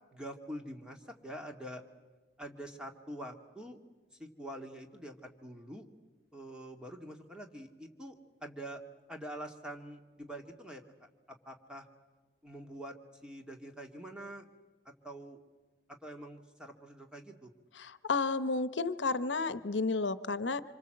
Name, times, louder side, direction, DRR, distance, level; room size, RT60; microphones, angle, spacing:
voice 1, 0.1-1.8 2.4-3.8 4.2-5.9 6.3-8.8 9.1-10.8 11.3-11.9 12.4-13.0 13.2-14.5 15.0-15.4 16.0-17.5, right 1 dB, 5° right, 3 dB, 2.1 m, -45 dB
voice 2, 17.8-20.6, left 3 dB, 85° left, 15 dB, 0.9 m, -32 dB
26.5 x 25.0 x 7.8 m, 1.3 s
head